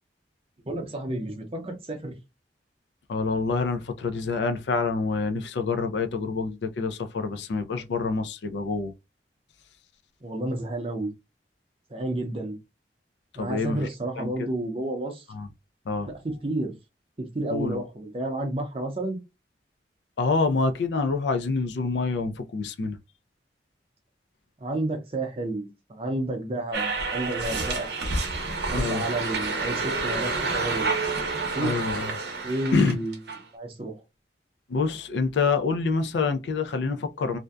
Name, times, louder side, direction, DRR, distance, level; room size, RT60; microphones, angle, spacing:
voice 1, 0.6-2.2 10.2-11.1 11.9-12.5 13.4-15.2 16.1-16.7 17.3-19.2 24.6-27.9 28.7-30.9 31.6-31.7 32.4-33.2 33.5-33.9, right 1 dB, 30° right, 0.5 m, -31 dB
voice 2, 3.1-8.9 13.4-13.9 14.2-14.5 15.3-15.5 15.9-16.1 17.5-17.8 20.2-23.0 28.7-29.0 31.6-32.1 32.7-33.0 34.7-37.4, left 4 dB, 75° left, 0.4 m, -27 dB
sound 1, 26.7-33.4, right 3 dB, 70° right, 0.7 m, -29 dB
2.6 x 2.1 x 2.3 m
head